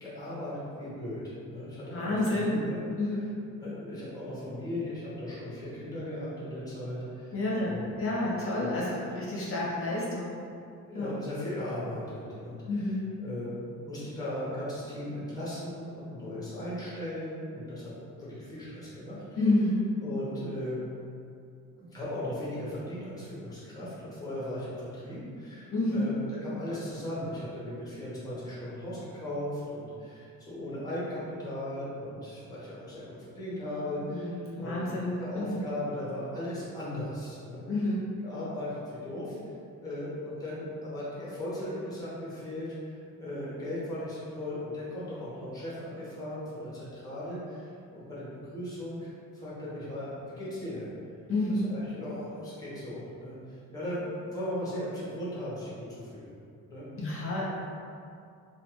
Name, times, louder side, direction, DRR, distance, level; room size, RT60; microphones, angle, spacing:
voice 1, 0.0-1.2 1.5-2.8 3.6-8.0 8.5-8.8 9.4-9.5 10.8-17.9 18.2-19.2 20.0-20.8 21.8-26.1 26.4-37.6 38.2-39.4 39.8-50.9 51.5-56.3 56.7-56.9, left 1 dB, 10° left, -9 dB, 0.9 m, -37 dB
voice 2, 1.9-2.6 3.0-3.3 7.3-10.3 10.9-11.1 12.7-13.0 19.4-19.9 25.7-26.1 34.1-35.6 37.7-38.0 51.3-51.6 57.0-57.4, left 2 dB, 45° left, -7 dB, 0.8 m, -29 dB
2.5 x 2.4 x 3.0 m, 2.4 s
cardioid pair, 140°, 31 cm